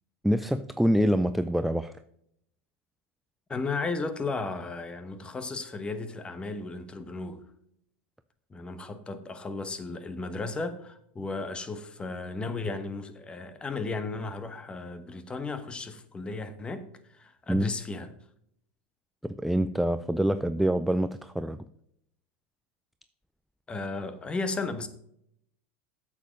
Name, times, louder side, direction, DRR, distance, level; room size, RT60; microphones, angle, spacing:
voice 1, 0.2-1.9 17.5-17.7 19.2-21.6, equal, ahead, 0.4 m, -26 dB
voice 2, 3.5-7.4 8.5-16.9 17.1-18.1 23.7-24.9, left 3 dB, 15° left, 1.1 m, -34 dB
8.5 x 7.4 x 5.2 m
supercardioid pair, 120°, 6 cm